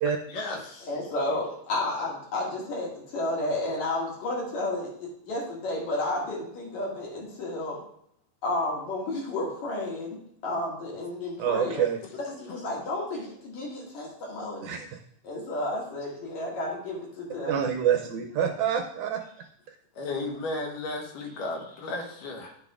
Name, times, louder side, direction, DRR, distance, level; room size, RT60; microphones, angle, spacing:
voice 1, 0.3-0.9 19.9-22.6, left 2 dB, 75° left, 2 dB, 2.7 m, -34 dB
voice 2, 0.8-7.8 8.4-11.9 12.1-14.8 15.2-17.6, left 2 dB, 60° left, -3 dB, 3.2 m, -32 dB
voice 3, 11.4-12.0 14.6-14.9 17.5-19.2, right 8 dB, 80° right, 4 dB, 1.8 m, -26 dB
11.0 x 7.0 x 2.4 m, 0.70 s
omnidirectional pair, 3.9 m